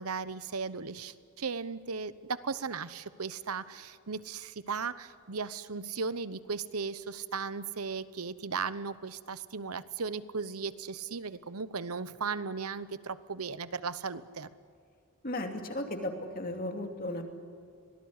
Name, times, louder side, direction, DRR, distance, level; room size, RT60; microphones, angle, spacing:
voice 1, 0.0-14.5, right 5 dB, 85° right, 15 dB, 1.0 m, -36 dB
voice 2, 15.2-17.2, left 1 dB, 40° left, 4 dB, 2.7 m, -35 dB
24.5 x 18.5 x 9.8 m, 2.3 s
head